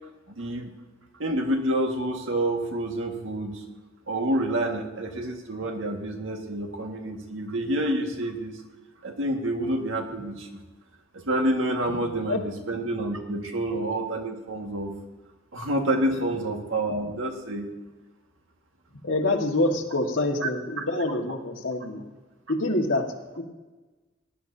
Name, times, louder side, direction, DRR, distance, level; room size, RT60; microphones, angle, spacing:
voice 1, 0.4-0.7 1.2-3.6 4.1-8.6 9.0-10.6 11.3-12.4 12.7-14.9 15.5-17.7 20.4-20.5 20.8-20.9, right 1 dB, 75° right, 3 dB, 1.8 m, -28 dB
voice 2, 11.9-12.4 19.0-22.0 22.5-23.4, left 2 dB, 75° left, 2 dB, 1.7 m, -26 dB
18.5 x 11.5 x 2.8 m, 1.2 s
head